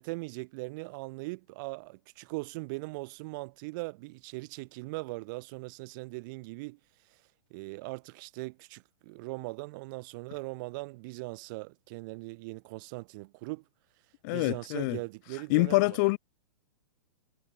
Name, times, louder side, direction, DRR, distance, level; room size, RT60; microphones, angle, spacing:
voice 1, 0.0-6.8 7.5-13.6 14.3-16.0, right 25 dB, 40° right, 3.9 m, -40 dB
voice 2, 14.2-15.0 15.5-16.2, left 26 dB, 35° left, 1.3 m, -25 dB
hypercardioid pair, 160°, 17 cm